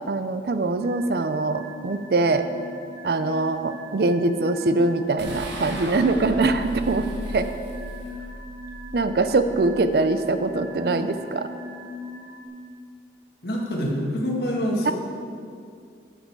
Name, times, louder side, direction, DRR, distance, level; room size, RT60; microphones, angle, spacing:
voice 1, 0.1-2.5 3.0-7.0 7.3-7.5 8.9-11.5 14.8-14.9, right 3 dB, 60° right, 10 dB, 0.4 m, -23 dB
sound 1, 0.8-12.5, left 2 dB, 40° right, 1.2 m, -40 dB
sound 2, 5.2-10.5, right 1 dB, 85° right, 1.4 m, -37 dB
voice 2, 13.4-14.9, equal, 60° left, -2 dB, 1.7 m, -26 dB
11.5 x 6.5 x 4.6 m, 2.3 s
head